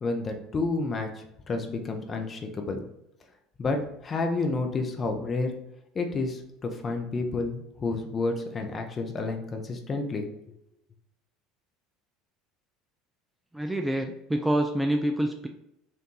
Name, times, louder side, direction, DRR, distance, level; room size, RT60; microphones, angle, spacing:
voice 1, 0.0-1.1 1.5-2.8 3.6-5.5 5.9-10.3, left 3 dB, 30° left, 5 dB, 0.7 m, -30 dB
voice 2, 13.5-15.5, right 1 dB, 5° right, 3 dB, 0.4 m, -27 dB
4.4 x 2.5 x 3.1 m, 0.82 s
figure-of-eight pair, 70°, 0 cm